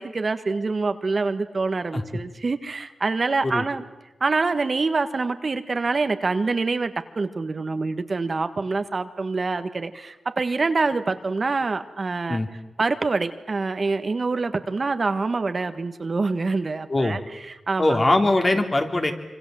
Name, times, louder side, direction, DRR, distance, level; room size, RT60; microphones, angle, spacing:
voice 1, 0.0-3.8 4.2-18.0, right 3 dB, 50° right, 9 dB, 1.6 m, -26 dB
voice 2, 17.8-19.1, left 2 dB, 35° left, 4 dB, 3.4 m, -21 dB
25.5 x 25.5 x 7.8 m, 1.0 s
cardioid pair, 55°, 0 cm